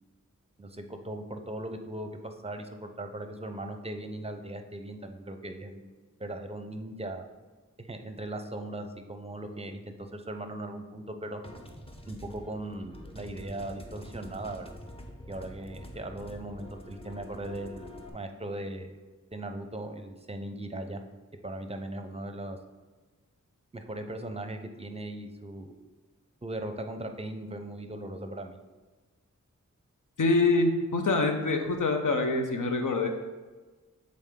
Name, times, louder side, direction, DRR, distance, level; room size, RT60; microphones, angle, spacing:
voice 1, 0.6-5.9 6.2-7.3 7.8-11.4 12.1-14.7 15.3-19.0 19.3-21.0 21.4-22.6 23.7-25.8 26.4-28.6, right 1 dB, 20° right, 6 dB, 0.6 m, -38 dB
sound 1, 11.4-18.1, left 1 dB, 20° left, 0.8 m, -46 dB
voice 2, 30.2-33.1, left 3 dB, 75° left, 4 dB, 0.8 m, -25 dB
7.4 x 3.8 x 3.7 m, 1.3 s
wide cardioid pair, 60°, 31 cm